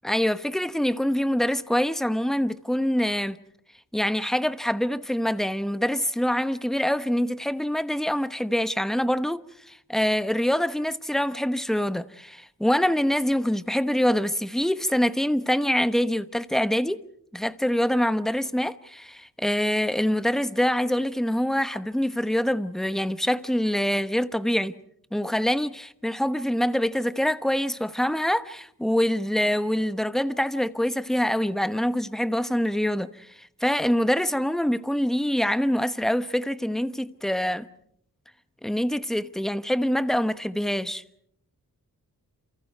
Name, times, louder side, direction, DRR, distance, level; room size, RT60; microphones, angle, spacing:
voice 1, 0.0-3.4 3.9-17.0 17.3-24.7 25.1-37.6 38.6-41.0, equal, ahead, 1.0 m, -25 dB
28.5 x 28.5 x 4.6 m
wide cardioid pair, 90°, 35 cm